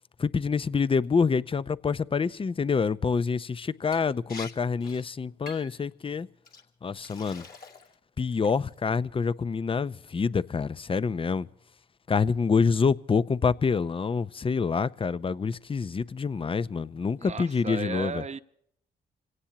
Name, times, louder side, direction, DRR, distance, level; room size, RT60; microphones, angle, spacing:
voice 1, 0.2-6.3 6.8-7.5 8.2-11.5 12.1-18.2, left 5 dB, 30° left, 0.6 m, -27 dB
Liquid, 3.9-4.0 4.3-4.5 4.8-5.0 5.5-5.8 6.4-6.6 7.0-7.9 8.3-8.7, left 4 dB, 50° left, 2.4 m, -45 dB
voice 2, 17.2-18.4, right 5 dB, 35° right, 0.9 m, -35 dB
27.0 x 17.5 x 2.9 m
supercardioid pair, 55°, 19 cm